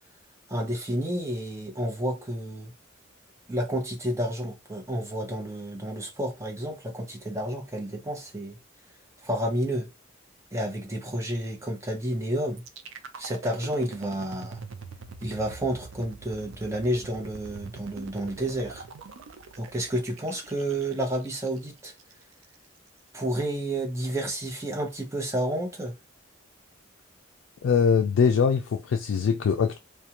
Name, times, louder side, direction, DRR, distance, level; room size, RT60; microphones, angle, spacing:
voice 1, 0.5-2.7 3.5-8.6 9.2-9.9 10.5-12.6 13.2-14.6 15.2-18.8 19.5-21.9 23.1-25.9, right 1 dB, 15° right, 0.6 m, -30 dB
sound 1, 12.6-22.6, right 4 dB, 75° right, 0.4 m, -44 dB
voice 2, 27.6-29.8, left 6 dB, 80° left, 0.3 m, -22 dB
2.4 x 2.2 x 2.8 m
head